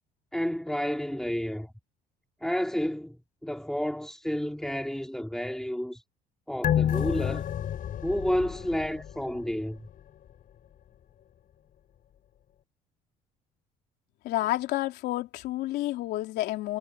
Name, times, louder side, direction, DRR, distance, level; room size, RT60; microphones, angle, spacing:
voice 1, 0.3-1.7 2.4-6.0 6.5-7.4 8.0-9.9, equal, 5° left, 3.9 m, -30 dB
sound 1, 6.6-9.5 9.9-10.0, left 10 dB, 55° left, 4.7 m, -29 dB
voice 2, 14.2-16.8, left 16 dB, 75° left, 3.4 m, -30 dB
supercardioid pair, 80°, 17 cm